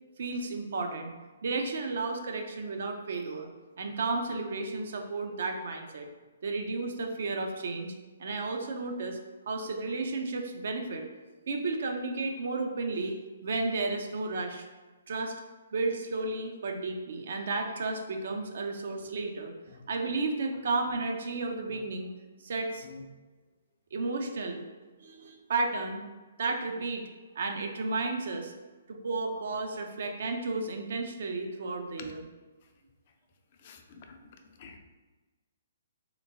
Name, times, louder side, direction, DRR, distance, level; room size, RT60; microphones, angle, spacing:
voice 1, 0.2-1.1 1.4-3.5 3.8-6.1 6.4-7.9 8.2-9.2 9.5-11.0 11.5-14.7 15.1-15.4 15.7-19.5 19.9-22.1 22.4-22.9 23.9-24.6 25.0-26.1 26.4-27.1 27.4-28.5 28.9-32.2, right 3 dB, 60° right, 4 dB, 0.4 m, -33 dB
voice 2, 33.6-34.3 34.6-34.8, left 5 dB, 45° left, 4 dB, 0.4 m, -48 dB
3.5 x 2.9 x 2.6 m, 1.2 s
figure-of-eight pair, 130°, 0 cm